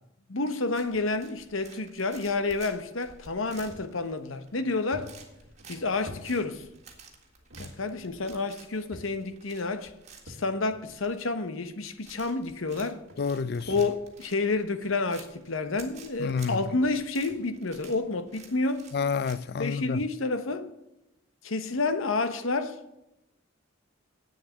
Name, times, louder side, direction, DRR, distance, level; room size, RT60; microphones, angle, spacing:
voice 1, 0.3-5.1 5.7-6.6 7.6-9.9 10.3-13.0 13.7-18.9 19.6-20.7 21.4-22.8, left 3 dB, 75° left, 1.0 m, -29 dB
sound 1, 0.7-19.8, right 5 dB, 35° right, 1.9 m, -52 dB
sound 2, 3.7-3.9 4.3-4.4 4.9-7.0 7.5-7.7 8.0-8.1 8.9-9.4 10.3-10.8 11.7-11.8 12.8-12.9 13.1-14.3 14.7-15.0 15.8-15.9 16.4-16.5 16.7-16.8 17.3-17.5, equal, 80° right, 1.5 m, -47 dB
voice 2, 13.2-13.7 16.2-16.6 18.9-20.0, left 5 dB, 50° left, 0.4 m, -29 dB
8.6 x 7.4 x 7.9 m
head